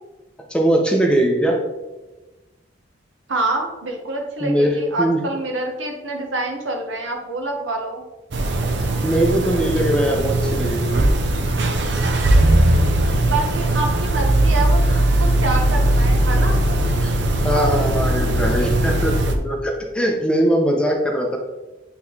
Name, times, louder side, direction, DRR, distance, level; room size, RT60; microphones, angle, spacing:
voice 1, 0.5-1.6 4.4-5.2 9.0-11.0 17.0-17.1 17.4-21.4, right 1 dB, 5° left, 0 dB, 0.7 m, -20 dB
voice 2, 3.3-8.0 13.3-16.6, right 2 dB, 80° right, 2 dB, 1.1 m, -26 dB
sound 1, 8.3-19.3, right 1 dB, 65° right, 0.6 m, -19 dB
8.4 x 3.5 x 3.2 m, 1.1 s
head